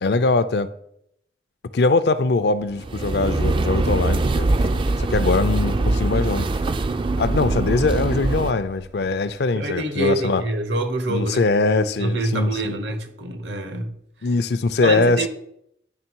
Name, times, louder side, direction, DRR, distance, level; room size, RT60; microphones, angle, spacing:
voice 1, 0.0-0.7 1.7-4.5 5.0-6.5 7.2-10.4 11.1-12.8 14.2-15.3, left 3 dB, 60° left, 0.4 m, -22 dB
sound 1, 2.7-8.5, right 2 dB, 25° right, 0.3 m, -22 dB
Wind, 4.0-9.5, right 2 dB, 90° right, 0.6 m, -38 dB
voice 2, 9.5-13.9 14.8-15.3, right 2 dB, 70° right, 1.0 m, -26 dB
9.8 x 3.3 x 4.5 m
head